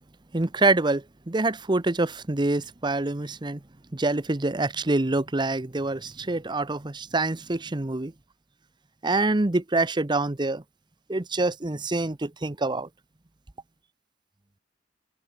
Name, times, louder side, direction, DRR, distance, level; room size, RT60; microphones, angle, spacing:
voice 1, 0.3-3.6 3.9-8.1 9.0-10.6 11.1-12.9, right 2 dB, 25° right, 0.8 m, -26 dB
head